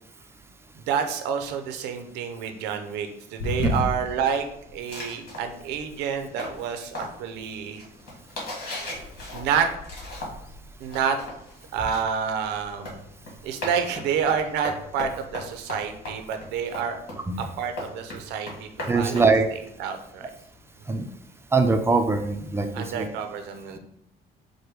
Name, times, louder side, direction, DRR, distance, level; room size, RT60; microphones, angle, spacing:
voice 1, 0.7-7.8 9.3-9.7 10.8-11.2 11.7-13.0 13.4-17.0 17.4-20.3 22.7-23.8, right 7 dB, 90° right, 6 dB, 0.6 m, -29 dB
sound 1, 3.4-21.3, left 2 dB, 85° left, 0.9 m, -41 dB
sound 2, 4.9-10.5 10.8-19.9, left 1 dB, 60° left, 1.8 m, -38 dB
voice 2, 18.9-19.5 20.9-21.0 21.5-23.1, right 4 dB, 15° right, 6 dB, 0.5 m, -22 dB
4.8 x 2.2 x 4.6 m, 0.74 s
cardioid pair, 110°, 17 cm